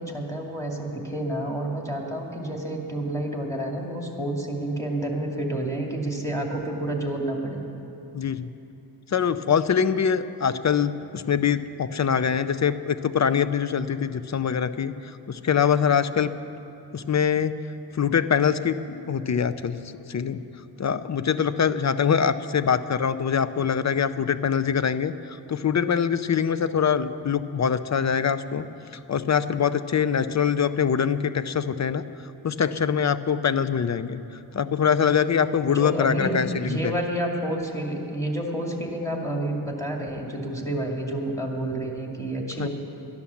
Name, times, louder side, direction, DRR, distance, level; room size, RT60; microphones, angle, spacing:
voice 1, 0.0-7.6 35.6-42.7, right 1 dB, 5° left, 0 dB, 2.3 m, -29 dB
voice 2, 8.1-8.5 9.1-16.3 16.9-17.5 17.9-19.8 20.1-20.4 20.8-28.6 29.1-32.0 32.4-34.2 34.5-36.9 42.6-42.7, left 7 dB, 40° left, 13 dB, 0.5 m, -24 dB
13.0 x 10.5 x 7.1 m, 2.8 s
cardioid pair, 80°, 46 cm